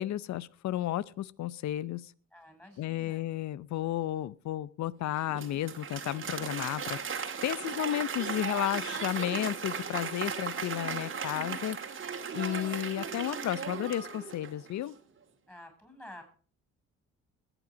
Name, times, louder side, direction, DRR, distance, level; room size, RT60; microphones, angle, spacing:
voice 1, 0.0-2.1 2.8-7.0 7.4-11.8 12.3-15.0, left 13 dB, 65° left, 22 dB, 0.6 m, -33 dB
voice 2, 2.3-3.2 15.5-16.2, left 1 dB, 5° left, 5 dB, 7.3 m, -50 dB
Applause, 5.1-14.7, right 6 dB, 40° right, 2.1 m, -37 dB
20.0 x 9.1 x 5.1 m, 0.42 s
cardioid pair, 90°, 30 cm